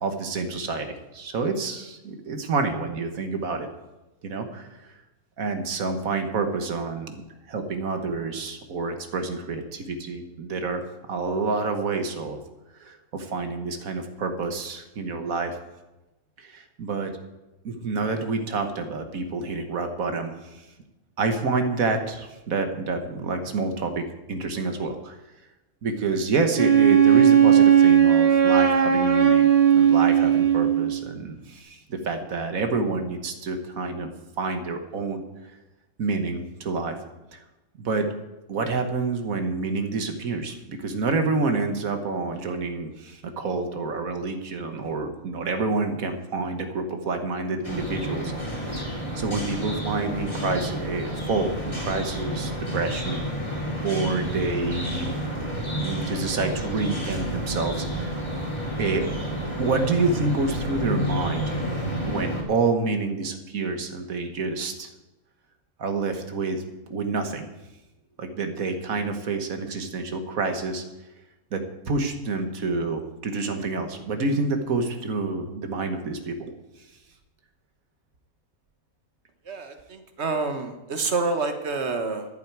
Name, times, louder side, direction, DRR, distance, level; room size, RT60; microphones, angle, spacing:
voice 1, 0.0-3.7 4.2-4.9 5.4-7.2 7.5-12.4 12.8-15.6 16.4-17.1 17.6-20.6 21.2-25.2 25.8-34.1 34.4-35.2 36.0-37.0 37.3-37.4 37.8-38.1 38.5-53.2 53.8-55.1 55.7-58.2 58.8-59.0 59.6-64.9 65.8-66.6 66.9-67.5 68.2-70.8 71.5-76.5, right 3 dB, 70° right, 7 dB, 1.6 m, -28 dB
Wind instrument woodwind instrument, 26.6-30.9, right 9 dB, 30° right, 1.0 m, -17 dB
sound 1, 47.6-62.4, equal, 20° left, 2.6 m, -30 dB
voice 2, 79.5-82.3, right 3 dB, 50° right, 7 dB, 1.6 m, -28 dB
13.5 x 11.0 x 4.7 m, 1.0 s
omnidirectional pair, 1.5 m